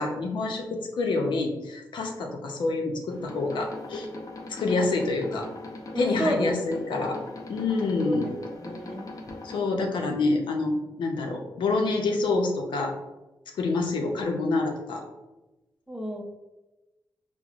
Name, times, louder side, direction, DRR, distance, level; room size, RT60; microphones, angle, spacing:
voice 1, 0.0-4.1 4.5-5.5 6.0-7.2 7.5-8.3 9.4-12.9 13.6-15.0, left 3 dB, 85° left, 2 dB, 0.6 m, -27 dB
sound 1, 3.1-9.6, left 2 dB, 45° left, 0.7 m, -41 dB
voice 2, 5.9-6.9 8.1-9.1 15.9-16.2, right 1 dB, 5° right, -2 dB, 0.6 m, -32 dB
5.9 x 2.1 x 2.4 m, 1.1 s
cardioid pair, 60°, 8 cm